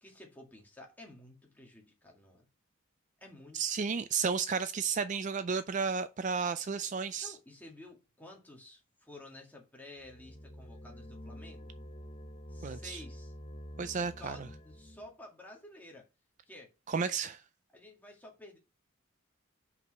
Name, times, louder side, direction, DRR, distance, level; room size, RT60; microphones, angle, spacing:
voice 1, 0.0-2.5 3.2-3.6 7.2-11.7 12.5-13.3 14.2-16.1 16.5-16.7 17.7-18.6, left 1 dB, 10° left, 2.0 m, -52 dB
voice 2, 3.5-7.3 12.6-13.0 13.8-14.4 16.9-17.4, right 5 dB, 35° right, 0.4 m, -32 dB
sound 1, 10.0-15.1, equal, 30° left, 0.7 m, -48 dB
5.4 x 4.8 x 6.1 m
head